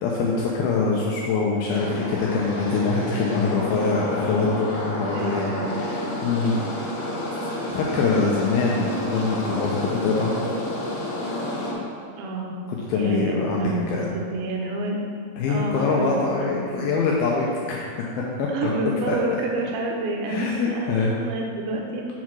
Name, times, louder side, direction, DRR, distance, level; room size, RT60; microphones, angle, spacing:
voice 1, 0.0-6.5 7.7-10.4 12.7-14.1 15.4-18.1 18.4-18.7 19.1-19.2 20.3-21.1, left 4 dB, 85° left, -3 dB, 2.1 m, -24 dB
sound 1, 1.7-11.7, left 1 dB, 60° left, 3.2 m, -30 dB
voice 2, 3.0-3.4 5.1-5.9 8.2-8.7 12.1-12.6 12.9-15.0 15.5-16.9 18.5-22.1, right 2 dB, 80° right, 0 dB, 3.2 m, -29 dB
7.0 x 4.7 x 5.9 m, 2.4 s
omnidirectional pair, 5.2 m